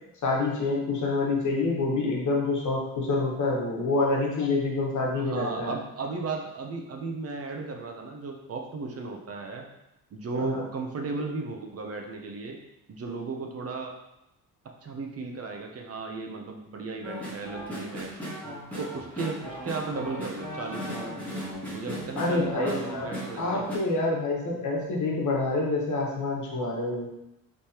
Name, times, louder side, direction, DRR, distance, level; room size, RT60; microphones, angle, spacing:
voice 1, 0.2-5.8 10.3-10.6 22.2-27.1, left 3 dB, 50° left, -2 dB, 1.2 m, -27 dB
voice 2, 5.2-9.7 10.1-12.6 12.9-13.9 14.8-18.1 18.8-21.1 21.7-23.7, right 4 dB, 40° right, 2 dB, 0.6 m, -35 dB
sound 1, 17.0-23.8, equal, 5° left, 1.6 m, -37 dB
5.1 x 3.3 x 2.9 m, 0.87 s
cardioid pair, 120°, 37 cm